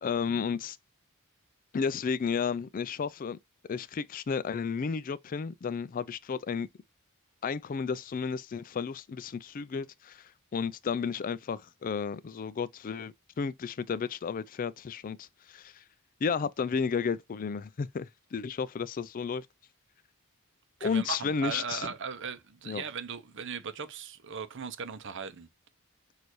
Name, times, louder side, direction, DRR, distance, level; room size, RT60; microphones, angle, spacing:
voice 1, 0.0-0.8 1.7-3.4 3.7-6.7 7.4-15.8 16.2-19.5 20.8-21.9 22.7-22.8, left 6 dB, 40° left, 0.3 m, -32 dB
voice 2, 20.8-25.5, right 6 dB, 55° right, 0.7 m, -38 dB
6.5 x 2.6 x 3.0 m
head